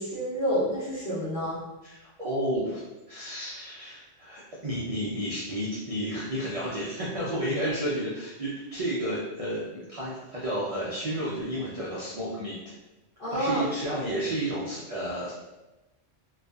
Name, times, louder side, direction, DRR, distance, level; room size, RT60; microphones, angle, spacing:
voice 1, 0.0-1.6 13.2-13.7, equal, 50° left, -8 dB, 1.1 m, -28 dB
voice 2, 1.8-2.8 3.1-12.7 13.3-15.3, right 1 dB, 65° right, -7 dB, 0.3 m, -31 dB
2.6 x 2.4 x 2.3 m, 1.0 s
omnidirectional pair, 1.3 m